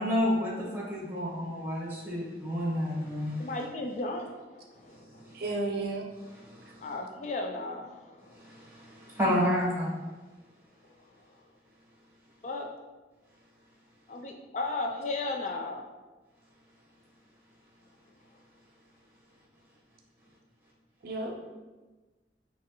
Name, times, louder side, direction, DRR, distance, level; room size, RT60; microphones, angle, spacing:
voice 1, 0.0-3.5 5.3-5.4 6.4-6.8 8.3-9.9, equal, 10° right, -5 dB, 1.2 m, -30 dB
voice 2, 3.4-5.2 6.8-8.4 11.2-11.3 12.4-12.7 14.1-15.9, left 2 dB, 45° left, 3 dB, 0.3 m, -35 dB
voice 3, 5.3-6.0 21.0-21.4, right 2 dB, 55° right, 1 dB, 0.5 m, -32 dB
4.3 x 3.1 x 3.0 m, 1.2 s
head